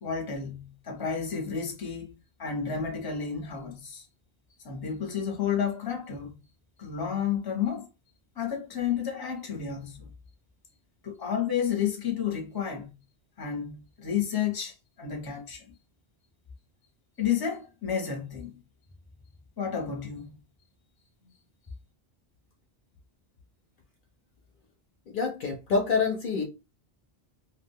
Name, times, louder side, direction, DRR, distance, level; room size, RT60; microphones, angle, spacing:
voice 1, 0.0-4.1 4.6-6.3 6.8-7.9 8.3-10.1 11.0-12.9 13.4-15.7 17.2-18.6 19.6-20.3, left 7 dB, 25° left, 0.7 m, -31 dB
voice 2, 25.1-26.4, left 4 dB, 60° left, 0.7 m, -27 dB
2.3 x 2.2 x 3.5 m
omnidirectional pair, 1.1 m